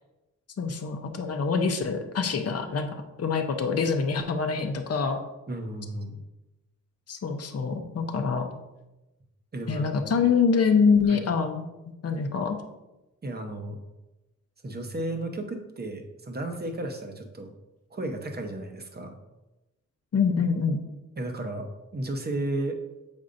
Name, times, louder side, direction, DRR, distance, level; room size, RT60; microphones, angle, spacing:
voice 1, 0.6-5.2 7.1-8.5 9.7-11.6 12.0-12.6 20.1-20.8, left 5 dB, 50° left, 5 dB, 0.7 m, -25 dB
voice 2, 5.5-6.2 9.5-9.9 11.1-11.2 13.2-13.8 14.6-17.5 17.9-19.2 21.2-22.8, right 1 dB, 30° right, 5 dB, 0.9 m, -33 dB
7.2 x 5.3 x 2.6 m, 1.0 s
wide cardioid pair, 95°, 33 cm